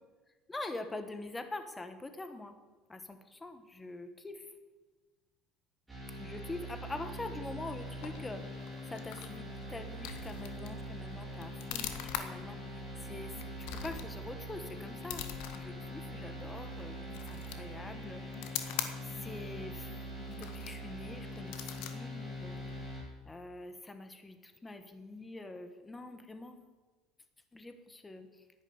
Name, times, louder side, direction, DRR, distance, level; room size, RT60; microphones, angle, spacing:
voice 1, 0.5-2.5 2.9-4.5 6.2-15.2 15.5-17.0 17.3-18.7 19.0-22.6 23.3-26.7 27.5-28.3, left 2 dB, 10° left, 8 dB, 1.3 m, -45 dB
sound 1, 5.9-23.0, equal, 5° right, 5.7 m, -43 dB
sound 2, 7.5-23.1, left 10 dB, 75° left, 1.6 m, -45 dB
11.5 x 10.0 x 9.7 m, 1.3 s
cardioid pair, 150°, 0 cm